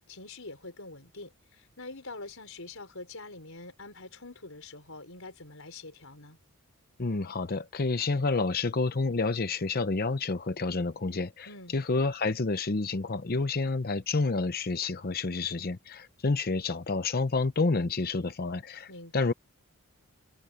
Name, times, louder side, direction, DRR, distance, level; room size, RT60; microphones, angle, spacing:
voice 1, 0.1-6.4 11.5-11.8 18.9-19.3, left 3 dB, 65° left, 5.5 m, -45 dB
voice 2, 7.0-18.9 19.1-19.3, left 3 dB, 45° left, 0.7 m, -29 dB
head